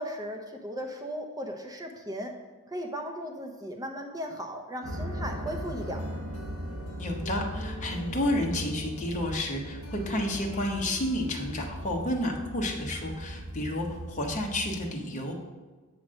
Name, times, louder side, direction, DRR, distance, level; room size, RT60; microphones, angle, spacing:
voice 1, 0.0-2.3 2.7-6.0, equal, 15° right, 3 dB, 0.6 m, -36 dB
sound 1, 4.8-14.8, equal, 80° right, 1.2 m, -38 dB
sound 2, 5.2-11.8, right 1 dB, 75° left, 0.8 m, -47 dB
voice 2, 7.0-15.3, left 1 dB, 35° left, 0 dB, 0.9 m, -31 dB
7.5 x 3.1 x 6.2 m, 1.3 s
head